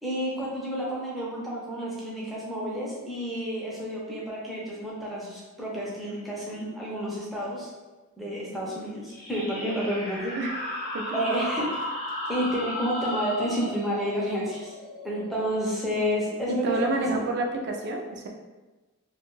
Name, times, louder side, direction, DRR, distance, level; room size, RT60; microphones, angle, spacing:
voice 1, 0.0-7.7 8.2-10.4 11.1-11.7 12.3-14.7 15.0-17.2, equal, ahead, -6 dB, 0.6 m, -30 dB
sound 1, 9.1-16.3, left 1 dB, 85° left, 0.8 m, -35 dB
voice 2, 16.5-18.3, right 2 dB, 50° right, 2 dB, 0.4 m, -29 dB
2.5 x 2.3 x 3.0 m, 1.2 s
head